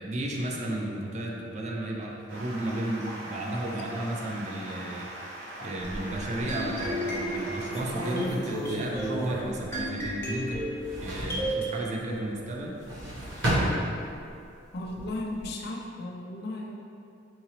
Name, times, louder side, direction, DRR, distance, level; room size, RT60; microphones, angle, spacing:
voice 1, 0.0-5.1 5.6-10.6 11.0-12.8, right 1 dB, 40° right, -1 dB, 0.4 m, -33 dB
Stream, 2.3-8.3, right 1 dB, 65° right, 0.9 m, -41 dB
sound 1, 5.8-6.7 7.3-7.4 7.7-10.4 10.6-11.5 12.6-14.4 14.8-15.5, equal, 90° right, 1.0 m, -32 dB
sound 2, 6.5-11.7, right 1 dB, 15° left, 0.6 m, -34 dB
voice 2, 14.7-16.7, left 1 dB, 60° left, 0 dB, 0.4 m, -35 dB
3.8 x 2.9 x 2.8 m, 2.5 s
head